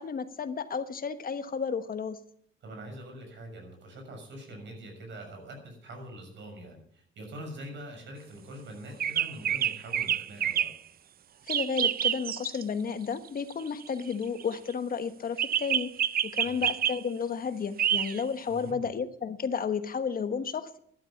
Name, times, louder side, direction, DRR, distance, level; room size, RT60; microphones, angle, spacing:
voice 1, 0.0-2.2 11.5-15.9 16.2-20.8, left 6 dB, 45° left, 10 dB, 1.3 m, -32 dB
voice 2, 2.6-10.7 16.4-16.7 18.5-18.9, right 1 dB, 65° right, 3 dB, 6.6 m, -44 dB
sound 1, 9.0-10.8 11.5-12.6 13.5-14.6 15.4-17.0 17.8-18.2, right 9 dB, 50° right, 0.5 m, -28 dB
12.5 x 12.0 x 7.1 m, 0.64 s
cardioid pair, 90°, 20 cm